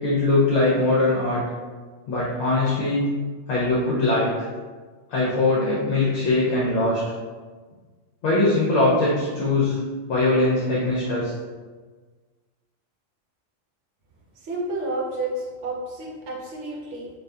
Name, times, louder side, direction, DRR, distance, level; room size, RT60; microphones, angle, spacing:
voice 1, 0.0-1.4 2.1-3.0 3.5-4.5 5.1-7.0 8.2-9.8 10.1-11.3, left 2 dB, 70° left, -5 dB, 0.8 m, -21 dB
voice 2, 14.4-17.1, right 2 dB, 70° right, -2 dB, 0.9 m, -30 dB
2.6 x 2.4 x 2.2 m, 1.4 s
omnidirectional pair, 1.3 m